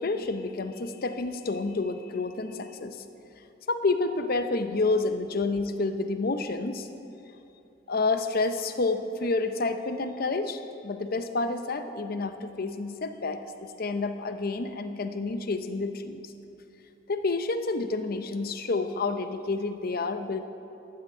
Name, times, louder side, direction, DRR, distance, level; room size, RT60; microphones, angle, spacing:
voice 1, 0.0-3.0 3.7-6.9 7.9-16.3 17.1-20.4, left 3 dB, 55° left, 9 dB, 0.6 m, -29 dB
11.5 x 5.7 x 8.9 m, 2.8 s
head